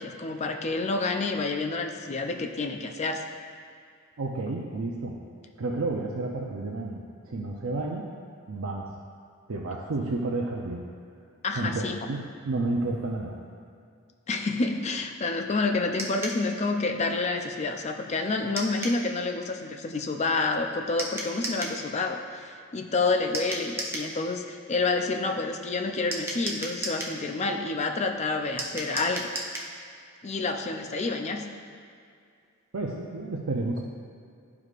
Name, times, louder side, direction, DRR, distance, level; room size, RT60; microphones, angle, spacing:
voice 1, 0.0-3.2 11.4-12.1 14.3-29.3 30.2-31.4, left 3 dB, 30° left, 4 dB, 0.4 m, -28 dB
voice 2, 4.2-5.2 5.6-8.1 8.5-8.9 9.5-10.9 11.5-13.4 32.7-33.8, right 2 dB, 70° right, -2 dB, 0.6 m, -31 dB
sound 1, 16.0-16.4 18.6-19.0 21.0-21.8 23.3-24.1 26.1-27.2 28.6-29.7, right 1 dB, 10° right, 0.8 m, -34 dB
12.5 x 4.7 x 2.5 m, 2.3 s
head